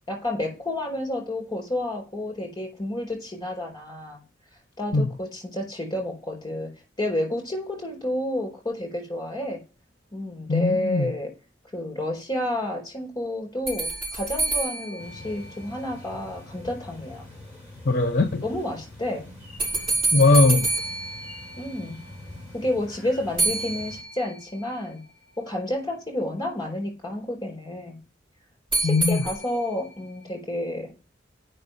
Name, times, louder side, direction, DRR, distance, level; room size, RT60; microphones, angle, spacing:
voice 1, 0.1-4.2 4.8-6.7 7.0-9.6 10.1-11.3 11.7-17.3 18.4-19.3 21.6-22.0 22.5-25.0 25.4-28.0 28.8-30.9, left 1 dB, 20° left, 4.4 m, -30 dB
voice 2, 10.5-11.1 17.8-18.4 20.1-20.7 28.8-29.3, left 3 dB, 45° left, 0.7 m, -20 dB
sound 1, 13.7-16.1 19.6-22.1 23.4-24.6 28.7-29.9, right 3 dB, 30° right, 4.5 m, -28 dB
sound 2, 15.0-24.0, left 1 dB, 10° right, 5.7 m, -44 dB
8.6 x 5.7 x 5.6 m
head